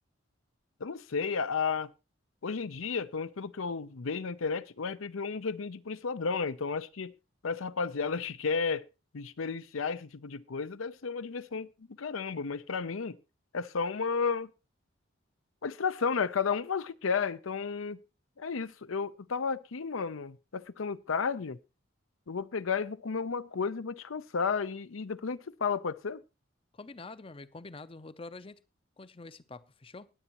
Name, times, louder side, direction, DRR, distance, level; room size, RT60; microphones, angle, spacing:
voice 1, 0.8-1.9 2.4-7.1 7.4-8.8 9.1-11.7 12.0-13.2 13.5-14.5 15.6-18.0 18.4-21.6 22.3-26.2, left 5 dB, 85° left, 0.6 m, -33 dB
voice 2, 26.7-28.6 29.0-30.1, left 3 dB, 25° left, 0.6 m, -46 dB
20.0 x 8.1 x 3.0 m
head